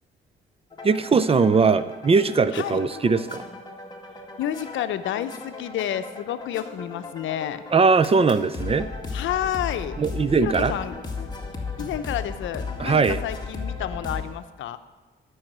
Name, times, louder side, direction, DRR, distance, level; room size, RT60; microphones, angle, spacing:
sound 1, 0.7-14.2, left 4 dB, 20° left, 2.0 m, -35 dB
voice 1, 0.8-3.4 7.7-8.9 10.0-10.7 12.8-13.2, right 4 dB, 30° right, 14 dB, 0.6 m, -20 dB
voice 2, 4.4-7.6 9.1-10.0 10.4-11.0 11.8-14.8, left 11 dB, 75° left, 11 dB, 0.7 m, -30 dB
12.0 x 6.4 x 7.9 m, 1.3 s
cardioid pair, 90°, 20 cm